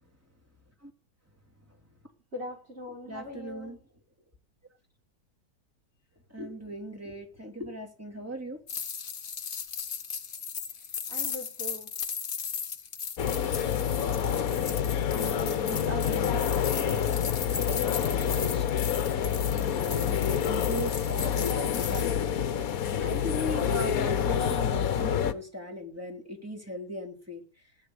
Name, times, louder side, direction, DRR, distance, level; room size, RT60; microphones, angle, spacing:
voice 1, 2.3-3.8 11.1-11.9, left 1 dB, 40° right, 0 dB, 5.5 m, -40 dB
voice 2, 3.1-3.8 6.3-8.6 15.1-17.1 17.5-18.7 19.7-22.2 23.0-27.4, equal, 10° right, 2 dB, 3.1 m, -38 dB
sound 1, 8.7-22.1, left 6 dB, 40° left, 1.0 m, -37 dB
sound 2, 13.2-25.3, left 8 dB, 65° left, 1.4 m, -28 dB
17.5 x 9.6 x 8.0 m, 0.41 s
omnidirectional pair, 1.6 m